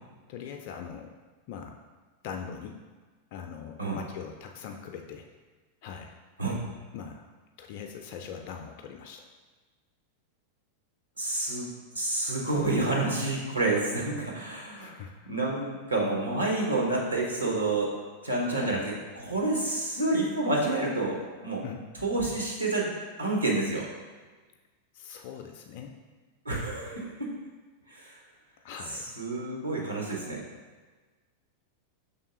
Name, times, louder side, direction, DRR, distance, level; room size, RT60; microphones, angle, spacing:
voice 1, 0.3-1.1 1.5-1.8 2.2-2.8 3.3-5.3 5.8-6.2 6.9-7.3 7.6-9.3 14.8-15.3 18.5-18.8 21.6-21.8 24.9-25.9 28.6-29.1, left 7 dB, 45° left, 2 dB, 0.3 m, -41 dB
voice 2, 11.2-14.9 15.3-17.9 18.2-18.8 19.1-21.6 22.0-22.9 23.2-23.9 26.4-27.3 27.9-28.2 28.9-30.4, right 2 dB, 85° right, -2 dB, 1.0 m, -29 dB
5.4 x 3.4 x 2.8 m, 1.3 s
figure-of-eight pair, 90°, 0 cm